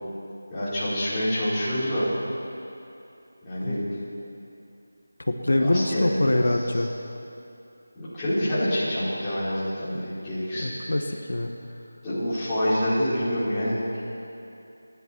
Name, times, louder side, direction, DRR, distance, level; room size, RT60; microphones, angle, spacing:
voice 1, 0.5-2.1 3.4-3.8 5.6-6.4 7.9-10.7 12.0-13.8, equal, 10° left, -14 dB, 4.8 m, -27 dB
voice 2, 5.2-6.9 10.6-11.5, left 1 dB, 80° left, 4 dB, 1.4 m, -24 dB
27.5 x 10.5 x 4.6 m, 2.8 s
figure-of-eight pair, 175°, 0 cm